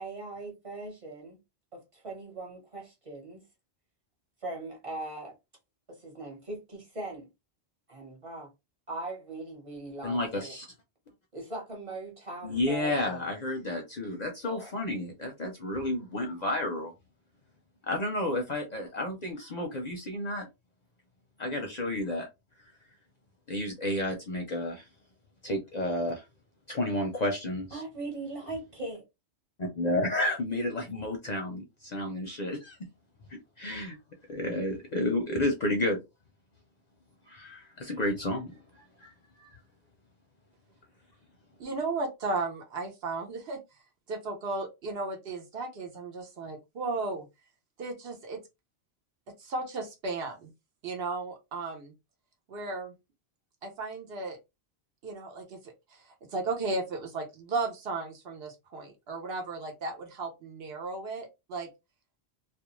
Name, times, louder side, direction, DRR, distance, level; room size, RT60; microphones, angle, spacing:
voice 1, 0.0-1.4 1.9-3.4 4.4-5.3 6.0-7.3 7.9-8.5 8.9-10.5 11.3-13.2 14.5-14.7 27.7-29.0, right 2 dB, 30° right, 1.0 m, -40 dB
voice 2, 10.0-10.7 12.4-16.9 17.9-20.5 21.4-22.3 23.5-24.8 25.4-26.2 26.7-27.8 29.6-32.8 33.6-34.0 34.3-36.0 37.3-38.5 39.0-39.1 39.4-39.6, left 1 dB, 50° left, 0.6 m, -31 dB
voice 3, 41.6-43.6 44.1-47.3 47.8-48.4 49.4-50.5 50.8-51.9 52.5-52.9 53.6-54.4 55.0-55.7 56.3-61.7, right 3 dB, 70° right, 0.9 m, -35 dB
2.4 x 2.2 x 3.0 m
omnidirectional pair, 1.1 m